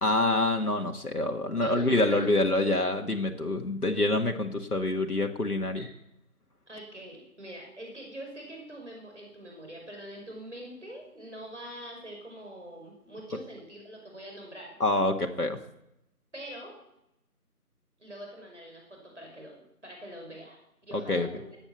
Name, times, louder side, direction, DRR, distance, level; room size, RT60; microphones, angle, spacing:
voice 1, 0.0-5.9 14.8-15.6 21.1-21.3, left 2 dB, 75° left, 3 dB, 1.9 m, -26 dB
voice 2, 1.6-2.3 5.8-5.9 6.7-14.7 16.3-16.8 18.0-19.5 19.8-20.6 20.9-21.4, right 1 dB, 50° right, 1 dB, 5.5 m, -44 dB
20.0 x 8.9 x 7.1 m, 0.83 s
figure-of-eight pair, 175°, 46 cm